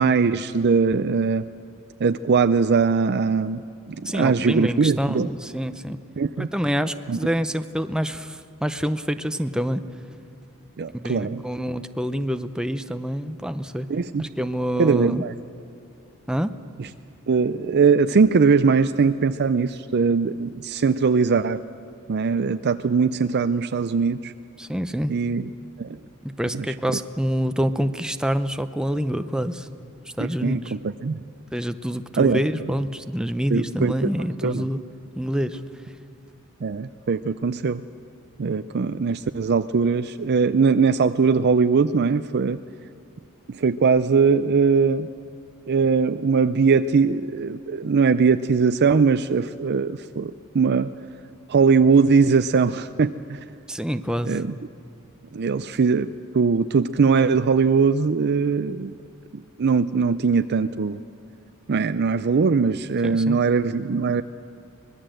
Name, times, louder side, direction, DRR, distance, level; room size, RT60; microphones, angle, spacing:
voice 1, 0.0-1.4 2.0-3.6 3.9-5.3 6.2-6.5 7.1-7.2 10.8-11.4 13.9-14.3 14.8-15.3 16.8-16.9 17.3-21.6 22.1-24.3 25.1-25.5 25.8-26.0 26.5-26.7 30.2-31.2 32.2-32.7 33.5-33.9 34.4-34.6 36.6-37.8 38.4-42.6 43.5-45.1 45.7-50.9 51.5-53.4 54.2-54.5 55.3-58.9 59.6-61.0 61.7-64.2, right 5 dB, 50° right, 10 dB, 0.5 m, -21 dB
voice 2, 4.1-6.0 6.4-9.8 10.9-13.9 14.2-15.2 16.3-16.5 24.6-25.2 26.2-29.7 30.2-30.7 31.5-34.8 35.2-35.6 53.7-54.4 63.0-63.4, equal, 5° right, 9 dB, 0.6 m, -26 dB
25.0 x 19.5 x 7.8 m, 2.6 s
head